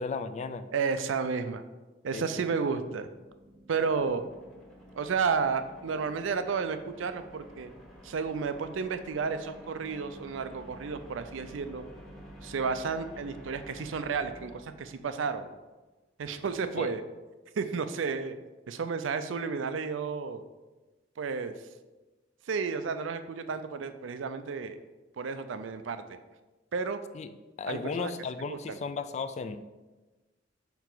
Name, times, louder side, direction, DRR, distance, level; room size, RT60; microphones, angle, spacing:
voice 1, 0.0-0.7 2.1-2.5 16.8-16.9 27.1-27.3 27.6-29.6, left 4 dB, 35° left, 10 dB, 0.3 m, -35 dB
voice 2, 0.7-1.6 2.0-3.1 3.7-4.2 4.9-7.7 8.0-11.8 12.4-15.5 16.2-17.0 17.6-18.3 18.7-20.4 21.2-21.5 22.5-24.8 25.2-26.2 26.7-27.0 27.7-28.1 28.5-28.8, right 5 dB, 80° right, 10 dB, 0.4 m, -32 dB
sound 1, 3.0-15.5, equal, ahead, 1.0 m, -50 dB
5.6 x 4.6 x 3.9 m, 1.2 s
head